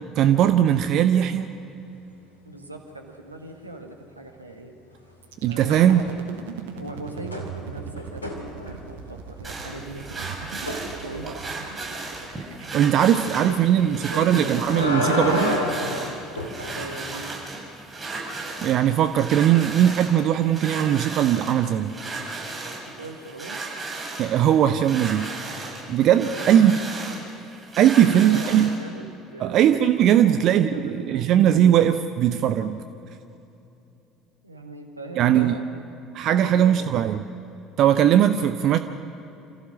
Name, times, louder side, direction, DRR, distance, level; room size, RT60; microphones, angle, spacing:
voice 1, 0.2-1.5 5.4-6.0 12.7-15.6 18.6-21.9 24.2-25.3 25.5-26.7 27.8-28.7 29.4-32.8 35.2-35.5 36.1-37.2 37.8-38.8, right 10 dB, 50° right, 10 dB, 0.7 m, -19 dB
voice 2, 2.4-4.8 5.5-6.0 6.7-10.3 11.0-11.4 13.4-14.5 16.7-17.3 23.0-23.6 26.2-27.3 28.0-29.8 30.1-31.6 34.4-35.8 36.4-37.0 38.6-38.8, right 2 dB, 90° right, 3 dB, 1.7 m, -40 dB
sound 1, 5.2-15.2, right 7 dB, 70° right, 1.2 m, -41 dB
sound 2, 5.7-6.4 6.7-9.1 10.7-10.9 14.2-16.8 19.0-19.1, left 1 dB, 85° left, 2.5 m, -29 dB
sound 3, 9.4-28.8, right 3 dB, 20° right, 6.8 m, -35 dB
28.0 x 15.0 x 6.4 m, 2.8 s
figure-of-eight pair, 60°, 0 cm